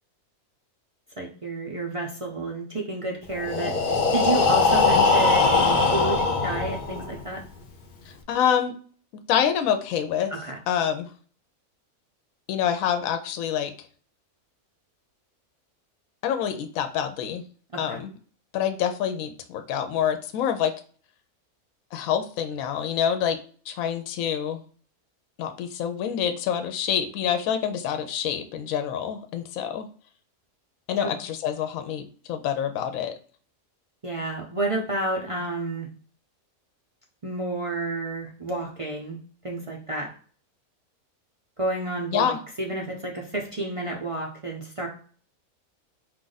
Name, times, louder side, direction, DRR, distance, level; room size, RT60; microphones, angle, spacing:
voice 1, 1.2-7.4 10.3-10.6 17.7-18.0 31.0-31.1 34.0-35.9 37.2-39.2 39.4-40.1 41.6-44.9, right 2 dB, 40° right, -1 dB, 0.4 m, -30 dB
Breathing, 3.3-7.2, left 4 dB, 50° left, 0.6 m, -21 dB
voice 2, 8.3-8.7 9.3-10.3 10.7-11.1 12.5-13.7 16.2-17.4 17.8-18.1 18.5-20.7 21.9-23.4 23.7-24.6 25.4-29.9 30.9-33.2 42.1-42.4, left 9 dB, 70° left, 8 dB, 0.9 m, -26 dB
4.5 x 2.5 x 3.9 m, 0.43 s
omnidirectional pair, 1.6 m